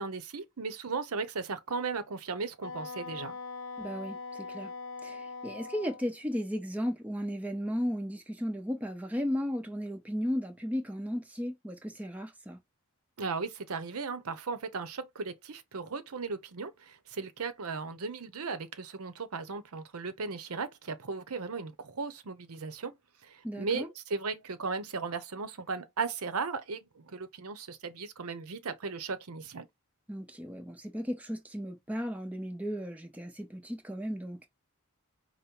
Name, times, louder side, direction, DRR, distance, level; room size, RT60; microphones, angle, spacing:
voice 1, 0.0-3.4 13.2-22.9 23.2-29.7, right 4 dB, 70° right, 0.7 m, -36 dB
Wind instrument woodwind instrument, 2.6-6.0, left 4 dB, 60° left, 0.7 m, -41 dB
voice 2, 3.8-4.7 5.0-12.6 23.4-23.9 30.1-34.5, equal, 5° right, 0.9 m, -35 dB
5.2 x 2.1 x 4.4 m
head